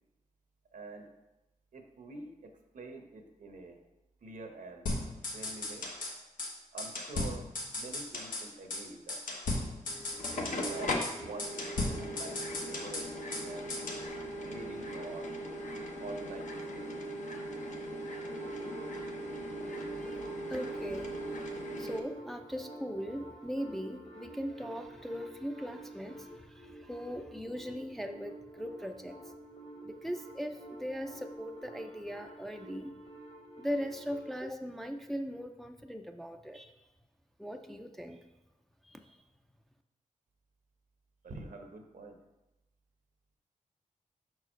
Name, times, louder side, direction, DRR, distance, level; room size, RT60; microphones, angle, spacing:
voice 1, 0.7-1.1 1.7-3.8 4.2-4.9 5.3-5.9 6.7-9.2 10.1-11.5 11.8-13.7 14.4-15.3 16.0-17.1 41.2-42.2, right 3 dB, 75° right, 4 dB, 0.9 m, -47 dB
sound 1, 4.9-6.1 6.4-6.5 6.8-8.5 8.7-8.8 9.1-10.8 11.0-11.1 11.4-13.4 13.7-14.0, left 2 dB, 85° left, 1.1 m, -36 dB
sound 2, 9.9-22.0, equal, 65° left, 0.9 m, -39 dB
sound 3, 18.3-34.3, right 2 dB, 45° left, 1.6 m, -49 dB
voice 2, 19.7-20.2 20.5-29.3 29.8-32.9 33.6-36.8 37.4-38.2 38.8-39.2, equal, ahead, 5 dB, 0.4 m, -40 dB
5.7 x 4.7 x 4.4 m, 0.97 s
wide cardioid pair, 90°, 14 cm